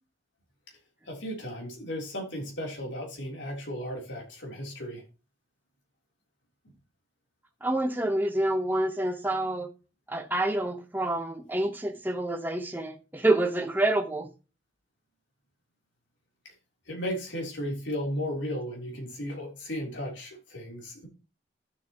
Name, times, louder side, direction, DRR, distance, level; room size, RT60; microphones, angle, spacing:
voice 1, 1.1-5.0 16.9-21.1, equal, 80° left, 3.4 m, -35 dB
voice 2, 7.6-9.7 10.1-14.3, right 1 dB, 10° right, 0.9 m, -27 dB
12.0 x 7.2 x 3.0 m
head